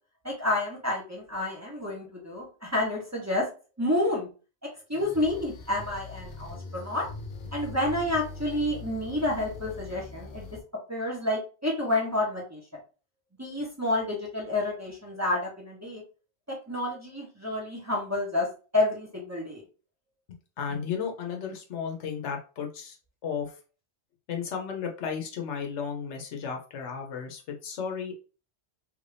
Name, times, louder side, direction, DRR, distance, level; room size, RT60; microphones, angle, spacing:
voice 1, 0.2-3.5 3.8-4.3 4.9-7.1 7.5-10.5 10.9-12.6 13.4-16.0 16.5-18.5 18.7-19.6, left 1 dB, 15° right, -4 dB, 0.9 m, -29 dB
sound 1, 4.9-10.6, left 3 dB, 50° left, 0.8 m, -42 dB
voice 2, 20.3-23.0 23.2-23.6 24.3-28.2, left 6 dB, 90° left, 2 dB, 1.1 m, -34 dB
3.3 x 2.6 x 3.3 m, 0.35 s
omnidirectional pair, 1.1 m